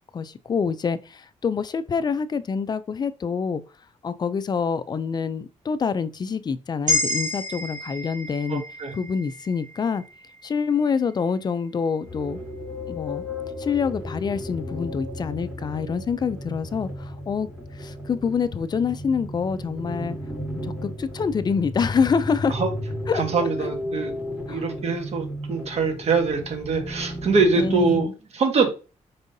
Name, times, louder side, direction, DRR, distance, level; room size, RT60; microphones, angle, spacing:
voice 1, 0.1-3.6 4.0-8.6 8.9-10.0 10.4-12.4 12.9-13.2 13.6-17.5 17.8-20.2 20.6-22.6 23.1-23.7 24.5-24.6 27.6-28.1, left 6 dB, 30° left, 0.4 m, -26 dB
sound 1, 6.9-11.1, left 1 dB, 75° right, 1.6 m, -30 dB
voice 2, 8.5-8.9 22.5-22.7 23.1-24.1 24.5-28.1 28.3-28.7, right 4 dB, 55° right, 1.3 m, -23 dB
sound 2, 12.0-28.0, left 1 dB, 10° right, 2.0 m, -34 dB
5.4 x 3.5 x 2.7 m
cardioid pair, 125°, 13 cm